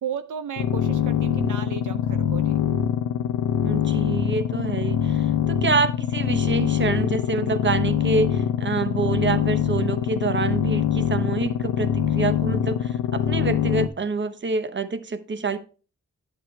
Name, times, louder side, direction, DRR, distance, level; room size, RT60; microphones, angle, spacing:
voice 1, 0.0-2.6, right 8 dB, 75° right, 0.6 m, -34 dB
sound 1, 0.6-13.9, left 9 dB, 80° left, 0.8 m, -24 dB
voice 2, 3.6-15.6, right 4 dB, 35° right, 0.9 m, -27 dB
9.4 x 8.0 x 3.2 m
cardioid pair, 60°, 31 cm